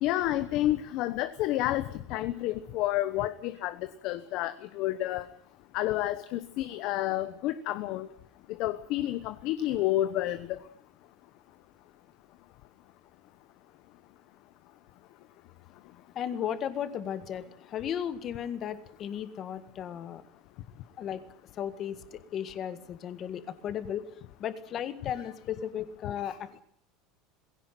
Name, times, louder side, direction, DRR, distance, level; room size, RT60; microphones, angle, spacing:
voice 1, 0.0-5.2 5.7-8.1 8.6-10.6 26.2-26.3, left 14 dB, 50° left, 11 dB, 1.0 m, -30 dB
voice 2, 16.1-20.2 21.0-21.2 21.6-24.1 24.4-26.6, left 9 dB, 30° left, 12 dB, 1.7 m, -35 dB
20.5 x 17.0 x 9.1 m, 0.67 s
cardioid pair, 165°, 0 cm